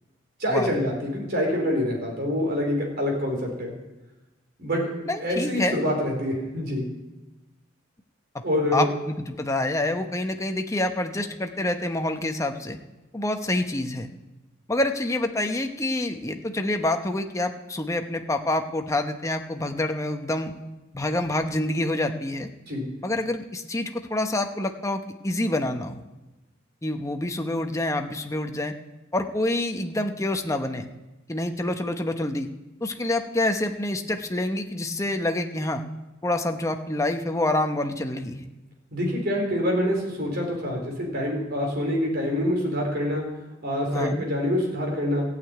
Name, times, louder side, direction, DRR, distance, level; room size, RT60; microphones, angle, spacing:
voice 1, 0.4-3.7 4.6-4.9 5.2-6.8 8.4-8.9 22.7-22.8 38.9-43.2 43.6-45.2, left 1 dB, 50° right, 0 dB, 4.1 m, -26 dB
voice 2, 5.1-5.8 8.3-8.4 8.7-12.8 13.1-14.1 14.7-20.5 20.9-22.5 23.0-26.0 26.8-28.7 29.1-30.9 31.3-32.5 32.8-35.8 36.2-38.5 43.9-44.2, left 1 dB, 15° left, 5 dB, 0.8 m, -27 dB
14.5 x 6.8 x 9.1 m, 1.1 s
head